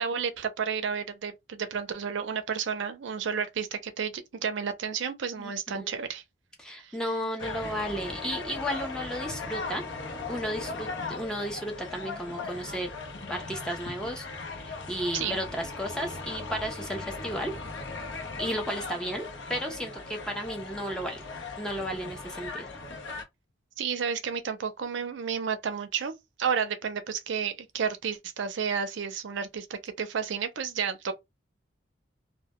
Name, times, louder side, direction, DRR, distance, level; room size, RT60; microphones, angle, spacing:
voice 1, 0.0-6.2 6.8-7.0 15.1-15.4 23.8-31.1, right 6 dB, 75° right, 0.4 m, -31 dB
voice 2, 5.4-6.0 6.6-9.8 10.3-12.9 13.3-14.3 14.6-17.6 18.4-21.2 21.6-22.7, equal, 5° left, 0.4 m, -34 dB
sound 1, 7.4-23.2, left 3 dB, 75° left, 0.6 m, -38 dB
2.1 x 2.1 x 2.9 m
head